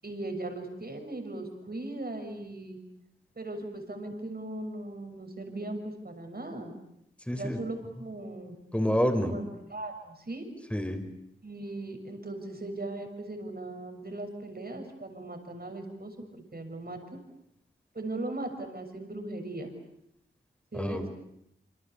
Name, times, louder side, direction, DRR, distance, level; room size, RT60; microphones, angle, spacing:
voice 1, 0.0-2.8 3.3-6.7 7.4-8.5 9.2-9.4 9.7-10.4 11.4-17.2 17.9-19.7 20.7-21.0, right 2 dB, 50° right, 5 dB, 6.6 m, -38 dB
voice 2, 7.3-7.6 8.7-9.3 10.7-11.0 20.7-21.1, equal, 5° left, 7 dB, 5.1 m, -28 dB
27.0 x 26.0 x 8.4 m, 0.77 s
wide cardioid pair, 55°, 21 cm